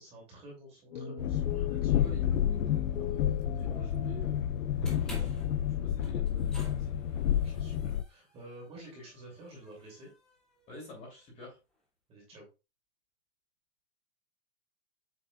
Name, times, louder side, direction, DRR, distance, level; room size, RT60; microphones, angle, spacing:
voice 1, 0.0-2.0 7.3-10.1 12.1-12.5, right 1 dB, 15° right, -2 dB, 2.8 m, -50 dB
sound 1, 0.9-4.6, left 9 dB, 65° left, 0.9 m, -40 dB
Train, 1.2-8.0, left 10 dB, 85° left, 0.6 m, -30 dB
voice 2, 1.9-2.2 2.5-7.2 10.7-11.6, equal, 20° left, -1 dB, 2.9 m, -48 dB
sound 2, 4.7-11.0, left 1 dB, ahead, 0.4 m, -47 dB
8.1 x 5.5 x 2.4 m, 0.27 s
supercardioid pair, 175°, 37 cm